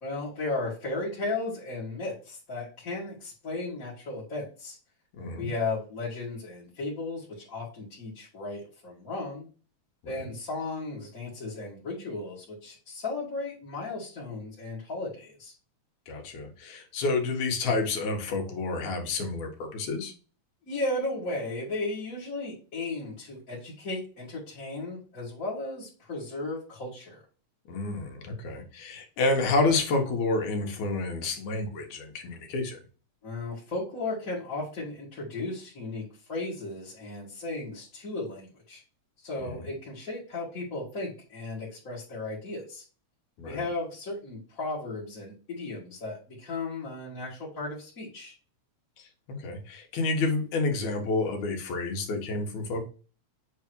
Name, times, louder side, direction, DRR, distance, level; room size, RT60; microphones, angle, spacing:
voice 1, 0.0-4.8 5.4-9.5 10.1-15.5 20.6-27.2 33.2-38.8 39.2-42.8 43.4-48.3, left 2 dB, 30° left, -8 dB, 2.3 m, -35 dB
voice 2, 5.1-5.5 10.0-10.3 16.1-20.1 27.7-32.8 39.4-39.7 43.4-43.6 49.0-52.9, left 3 dB, 80° left, 3 dB, 2.8 m, -29 dB
8.2 x 3.6 x 4.6 m, 0.36 s
omnidirectional pair, 3.3 m